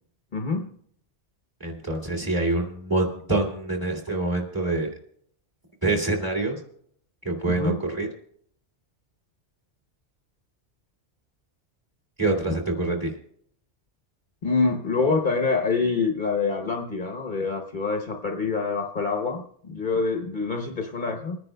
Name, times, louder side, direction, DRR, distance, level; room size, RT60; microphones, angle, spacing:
voice 1, 0.3-0.7 7.5-7.8 14.4-21.4, left 4 dB, 45° left, 3 dB, 1.0 m, -26 dB
voice 2, 1.6-4.9 5.8-6.6 7.2-8.1 12.2-13.1, right 2 dB, 20° right, 0 dB, 2.4 m, -26 dB
29.5 x 10.0 x 2.2 m, 0.66 s
omnidirectional pair, 1.2 m